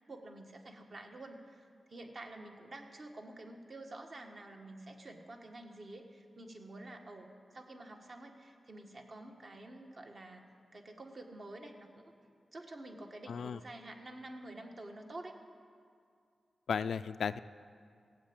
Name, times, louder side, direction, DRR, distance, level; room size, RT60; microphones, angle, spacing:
voice 1, 0.1-1.6 1.9-10.4 10.7-11.9 12.5-15.4, right 2 dB, 50° right, 3 dB, 1.6 m, -49 dB
voice 2, 13.3-13.6 16.7-17.4, left 6 dB, 85° left, 14 dB, 0.3 m, -34 dB
16.0 x 8.1 x 8.7 m, 2.2 s
wide cardioid pair, 85°, 0 cm